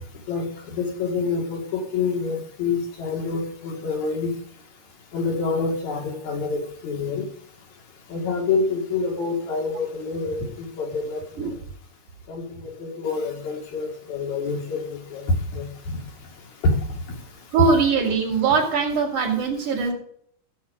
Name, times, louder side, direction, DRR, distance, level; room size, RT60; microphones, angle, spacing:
voice 1, 0.3-4.3 5.1-7.2 8.1-11.2 12.3-12.4 12.8-14.8 15.1-15.2 15.5-15.7 16.6-16.7, left 4 dB, 75° left, 2 dB, 3.4 m, -27 dB
voice 2, 17.5-19.9, right 5 dB, 90° right, -4 dB, 3.5 m, -21 dB
15.5 x 7.8 x 5.0 m, 0.64 s
omnidirectional pair, 3.4 m